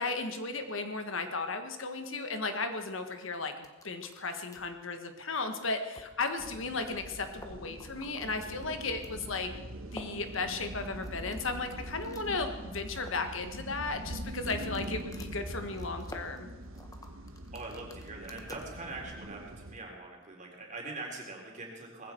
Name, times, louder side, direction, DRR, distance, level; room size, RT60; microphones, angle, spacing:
voice 1, 0.0-9.5 9.9-16.5, left 3 dB, 70° left, 7 dB, 1.6 m, -35 dB
sound 1, 3.6-4.8 5.3-5.4 5.9-6.3 6.6-6.7 6.9-7.0 7.3-9.1 9.9-12.3 12.7-13.3 14.2-18.7, left 2 dB, 15° left, 1.3 m, -51 dB
sound 2, 6.4-19.8, right 1 dB, 75° right, 1.4 m, -43 dB
voice 2, 17.5-22.1, right 2 dB, 40° right, -1 dB, 3.9 m, -43 dB
19.5 x 15.5 x 4.6 m, 1.1 s
head